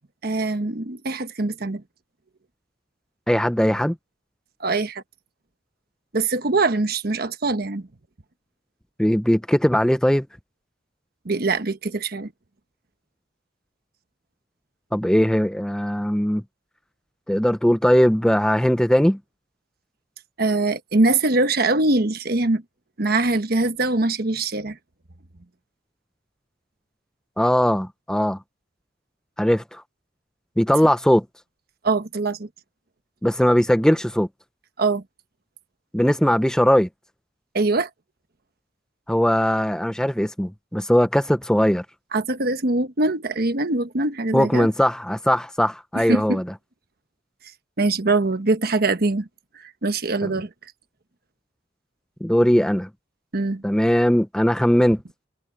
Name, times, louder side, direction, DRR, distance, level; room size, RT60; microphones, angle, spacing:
voice 1, 0.2-1.8 4.6-5.0 6.1-7.9 11.2-12.3 20.4-22.6 23.0-24.8 31.8-32.5 34.8-35.0 37.5-37.9 42.1-44.7 45.9-46.4 47.8-49.3 49.5-50.5 53.3-53.6, right 2 dB, 55° right, 1.2 m, -23 dB
voice 2, 3.3-4.0 9.0-10.3 14.9-16.4 17.3-19.2 27.4-28.4 29.4-29.8 30.6-31.2 33.2-34.3 35.9-36.9 39.1-41.8 44.3-46.4 50.2-50.3 52.2-52.9 53.6-55.0, equal, 5° left, 0.5 m, -19 dB
head